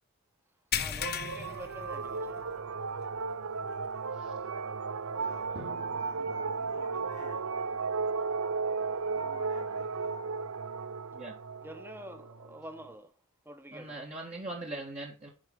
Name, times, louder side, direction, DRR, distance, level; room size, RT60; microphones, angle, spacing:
sound 1, 0.7-2.6 2.9-3.2 3.6-3.7 5.4-5.5, left 8 dB, 45° left, 0.9 m, -35 dB
voice 1, 0.8-2.4 11.6-13.1 13.4-14.0, right 1 dB, 10° right, 1.1 m, -47 dB
sound 2, 1.0-12.8, right 4 dB, 75° right, 0.7 m, -35 dB
voice 2, 5.1-7.5 9.1-10.2, left 3 dB, 85° left, 1.6 m, -52 dB
Drum, 5.5-7.5, equal, 50° right, 2.9 m, -50 dB
voice 3, 13.7-15.3, right 2 dB, 30° right, 1.5 m, -40 dB
10.5 x 4.9 x 3.8 m
head